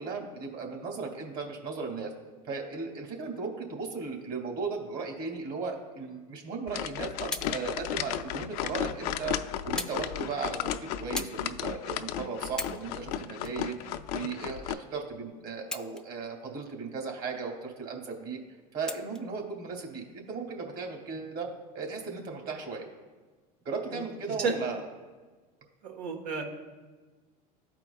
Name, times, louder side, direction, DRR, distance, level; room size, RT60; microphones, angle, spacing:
voice 1, 0.0-2.1 2.4-9.4 9.6-18.4 18.7-21.5 21.7-22.8 23.6-24.8, right 4 dB, 55° right, 1 dB, 2.1 m, -36 dB
sound 1, 6.7-14.7, left 10 dB, 75° left, 0.5 m, -34 dB
sound 2, 7.2-7.6 8.4-8.5 9.8-10.0 10.3-10.6 11.1-11.4 11.9-12.0 12.5-12.9 13.4-14.4 15.6-16.3 16.7-16.8 18.9-19.3 20.2-20.3, left 2 dB, 5° left, 0.5 m, -38 dB
voice 2, 25.8-26.4, right 4 dB, 85° right, 2 dB, 1.4 m, -31 dB
13.5 x 4.5 x 2.3 m, 1.3 s
hypercardioid pair, 90°, 20 cm